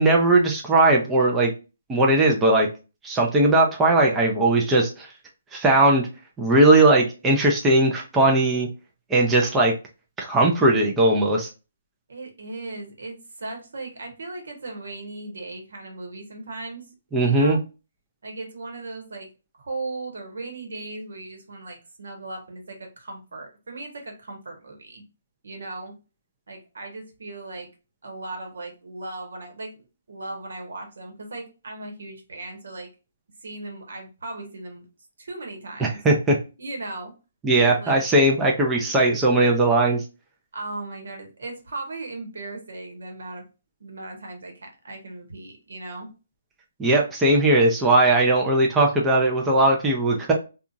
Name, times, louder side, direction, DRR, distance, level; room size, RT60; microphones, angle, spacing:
voice 1, 0.0-1.5 1.9-2.7 3.0-5.1 5.5-6.1 6.4-8.7 9.1-9.7 10.2-11.5 17.1-17.6 35.8-36.4 37.4-40.0 46.8-50.3, right 2 dB, 10° right, -1 dB, 0.5 m, -19 dB
voice 2, 12.1-16.9 17.2-17.6 18.2-19.3 19.6-25.0 25.4-25.9 26.5-27.7 28.0-29.8 30.1-32.9 33.4-34.9 35.2-36.0 36.6-37.1 37.6-38.0 40.5-43.4 43.8-46.1, right 2 dB, 75° right, 3 dB, 1.1 m, -37 dB
2.8 x 2.4 x 2.5 m, 0.31 s
hypercardioid pair, 150°, 0 cm